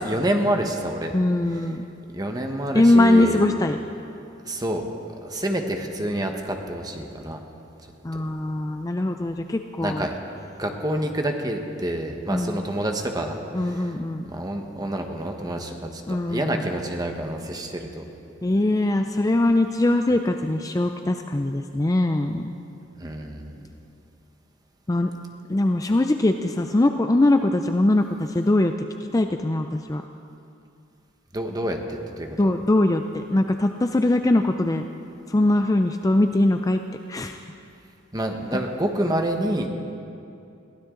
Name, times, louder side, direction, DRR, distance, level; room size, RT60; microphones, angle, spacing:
voice 1, 0.0-1.1 1.5-1.6 2.1-3.4 4.4-4.9 5.2-7.4 9.8-10.2 10.6-13.9 14.2-18.0 23.0-23.6 31.3-32.5 38.1-39.7, right 1 dB, 20° right, 3 dB, 1.2 m, -28 dB
voice 2, 1.1-1.9 2.7-3.8 8.0-10.0 12.3-12.6 13.5-14.3 16.1-16.6 18.4-22.6 24.9-25.1 25.5-28.1 28.3-28.7 29.1-30.0 32.4-34.9 35.3-36.8 37.1-37.4 38.5-38.6, left 1 dB, 15° left, 6 dB, 0.4 m, -21 dB
22.0 x 15.5 x 3.8 m, 2.6 s
head